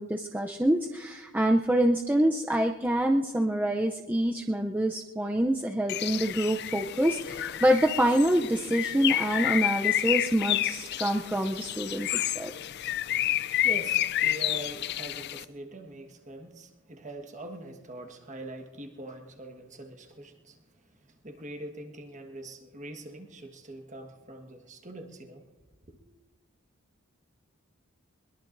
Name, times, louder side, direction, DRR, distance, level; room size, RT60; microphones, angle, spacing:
voice 1, 0.0-12.5, right 1 dB, 10° right, 2 dB, 0.5 m, -26 dB
Bird, 5.9-15.4, left 13 dB, 50° left, 0.4 m, -30 dB
voice 2, 13.2-25.5 25.9-26.0, right 1 dB, 35° right, 4 dB, 1.4 m, -43 dB
22.0 x 21.5 x 2.6 m, 1.2 s
head